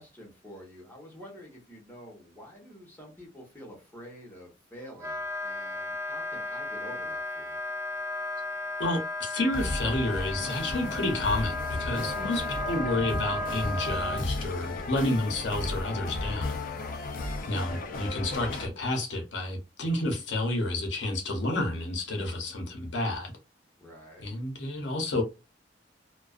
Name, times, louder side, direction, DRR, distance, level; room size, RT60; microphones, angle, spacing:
voice 1, 0.0-7.6 23.8-24.3, equal, 10° left, 1.0 m, -48 dB
Wind instrument woodwind instrument, 5.0-14.2, left 2 dB, 15° right, 0.4 m, -34 dB
voice 2, 8.8-16.6 17.5-23.3 24.2-25.2, left 2 dB, 75° left, 0.7 m, -30 dB
sound 1, 9.5-18.7, left 2 dB, 50° left, 0.4 m, -35 dB
2.4 x 2.2 x 2.3 m
head